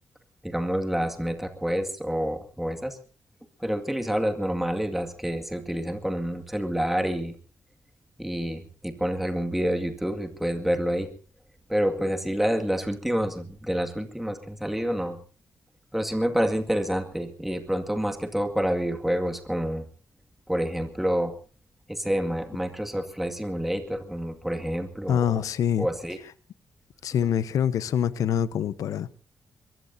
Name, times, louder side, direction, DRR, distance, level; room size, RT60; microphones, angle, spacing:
voice 1, 0.4-3.0 3.6-7.3 8.2-11.1 11.7-15.2 15.9-19.9 20.5-21.3 21.9-25.4 25.8-26.2, equal, 5° right, 2.1 m, -28 dB
voice 2, 25.1-25.9 27.0-29.1, left 9 dB, 90° left, 1.0 m, -25 dB
23.0 x 22.0 x 2.7 m
wide cardioid pair, 155°, 6 cm